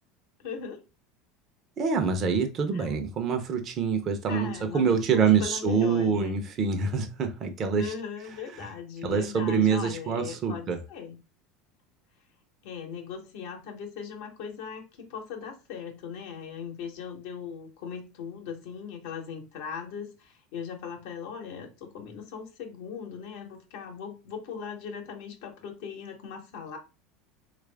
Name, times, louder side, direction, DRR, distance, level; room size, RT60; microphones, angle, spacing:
voice 1, 0.4-0.8 2.7-2.9 4.3-6.4 7.8-11.2 12.6-26.8, left 6 dB, 75° left, 0.9 m, -39 dB
voice 2, 1.8-7.9 9.0-10.8, right 6 dB, 45° right, 0.6 m, -25 dB
3.1 x 2.5 x 3.3 m
supercardioid pair, 100°, 0 cm